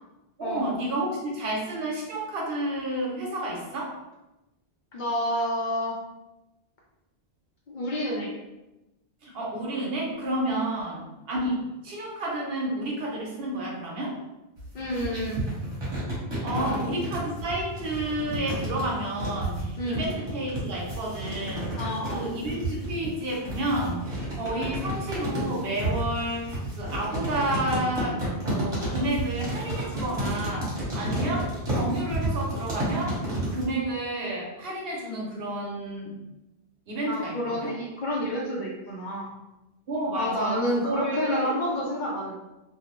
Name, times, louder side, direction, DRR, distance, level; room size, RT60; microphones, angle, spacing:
voice 1, 0.4-3.9 9.2-11.6 11.8-14.2 16.4-21.8 22.1-33.2 33.5-36.1 36.9-37.7 39.9-41.6, right 1 dB, 65° right, -3 dB, 0.9 m, -31 dB
voice 2, 4.9-6.0 7.7-8.3 10.5-10.6 14.7-15.4 16.5-16.8 19.8-20.0 21.8-22.3 37.1-39.3 40.2-42.3, equal, 55° left, -4 dB, 0.6 m, -29 dB
sound 1, 14.6-33.7, right 1 dB, 30° right, 1.0 m, -31 dB
2.6 x 2.0 x 2.9 m, 0.99 s
omnidirectional pair, 1.1 m